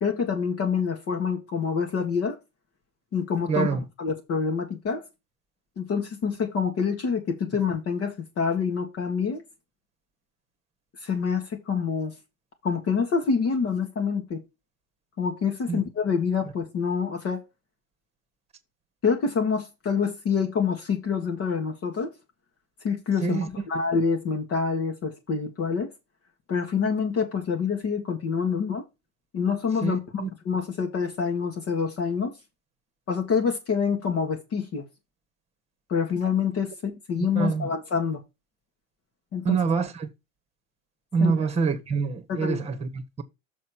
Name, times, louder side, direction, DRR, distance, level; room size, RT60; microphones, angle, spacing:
voice 1, 0.0-2.4 3.1-3.7 4.0-5.0 5.8-9.4 11.0-12.1 12.6-14.4 15.2-17.4 19.0-22.1 22.8-25.9 26.5-28.8 29.3-32.3 33.1-34.8 35.9-38.2 39.3-39.6 41.2-41.4 42.3-42.6, left 6 dB, 35° left, 1.8 m, -26 dB
voice 2, 3.5-3.8 15.7-15.8 23.2-23.5 29.8-30.3 37.3-37.7 39.4-40.1 41.1-43.2, right 5 dB, 15° right, 1.6 m, -26 dB
6.8 x 4.1 x 6.3 m
hypercardioid pair, 105°, 39 cm